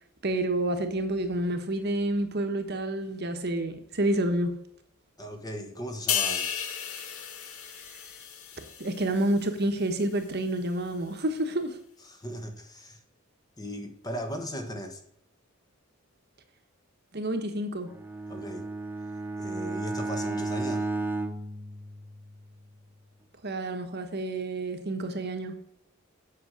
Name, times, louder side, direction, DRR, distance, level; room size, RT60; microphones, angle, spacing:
voice 1, 0.2-4.5 8.8-11.8 17.1-17.9 23.4-25.5, right 1 dB, 50° right, 7 dB, 1.2 m, -29 dB
voice 2, 5.2-6.5 12.0-13.0 13.6-15.0 18.3-18.7 19.4-20.9, equal, 20° left, 5 dB, 1.4 m, -37 dB
sound 1, 6.1-9.6 10.0-10.2, left 8 dB, 80° left, 1.4 m, -33 dB
Bowed string instrument, 17.9-22.5, right 2 dB, 10° right, 0.6 m, -33 dB
8.3 x 6.2 x 7.7 m, 0.73 s
head